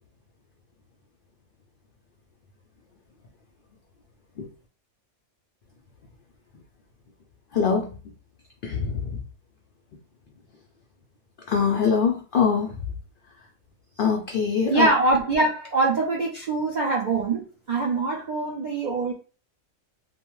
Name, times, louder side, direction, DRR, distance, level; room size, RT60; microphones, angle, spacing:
voice 1, 7.5-7.9 8.6-9.2 11.5-12.7 14.0-14.9, left 6 dB, 80° left, 2 dB, 0.4 m, -23 dB
voice 2, 14.7-19.1, right 3 dB, 65° right, -2 dB, 0.4 m, -23 dB
3.0 x 2.0 x 3.0 m, 0.36 s
omnidirectional pair, 1.4 m